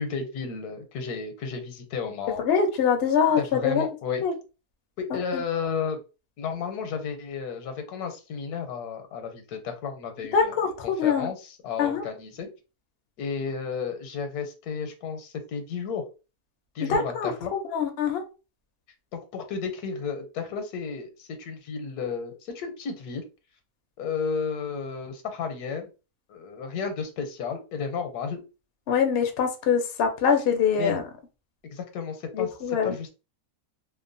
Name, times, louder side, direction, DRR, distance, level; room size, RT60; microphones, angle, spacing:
voice 1, 0.0-2.4 3.4-4.2 5.0-6.0 6.4-10.6 10.8-12.5 13.2-16.1 16.7-17.5 19.1-23.2 24.0-25.9 26.3-28.4 30.8-31.0 31.6-33.1, left 6 dB, 85° left, 7 dB, 1.2 m, -33 dB
voice 2, 2.4-3.8 4.2-4.3 5.3-5.4 10.3-11.3 11.8-12.0 16.9-18.2 28.9-31.0 32.3-33.0, left 6 dB, 65° left, 5 dB, 0.6 m, -24 dB
2.8 x 2.1 x 2.5 m, 0.31 s
omnidirectional pair, 1.6 m